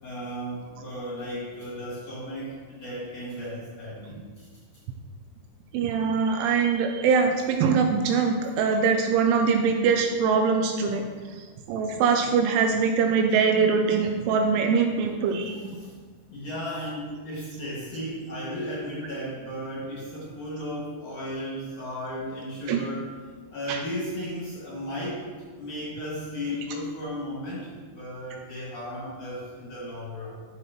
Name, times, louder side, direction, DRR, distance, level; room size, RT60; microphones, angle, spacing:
voice 1, 0.0-4.5 15.5-15.9 16.3-23.1 23.5-30.4, equal, 50° left, -7 dB, 2.5 m, -35 dB
voice 2, 5.7-11.1 11.3-15.6 22.7-22.9 23.7-23.8, right 5 dB, 80° right, 4 dB, 2.9 m, -23 dB
11.5 x 7.3 x 3.1 m, 1.5 s
omnidirectional pair, 5.9 m